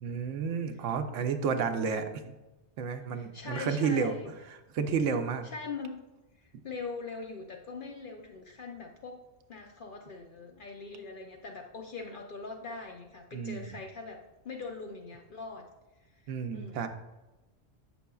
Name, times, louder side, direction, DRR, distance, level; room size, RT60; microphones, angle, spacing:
voice 1, 0.0-2.3 2.8-4.2 4.7-5.5 13.3-13.8 16.3-16.9, right 6 dB, 85° right, 7 dB, 0.9 m, -31 dB
voice 2, 3.1-4.4 5.4-6.0 6.3-9.2 9.5-15.7 16.0-16.9, left 4 dB, 55° left, 2 dB, 0.6 m, -42 dB
8.4 x 6.1 x 2.3 m, 1.1 s
omnidirectional pair, 1.2 m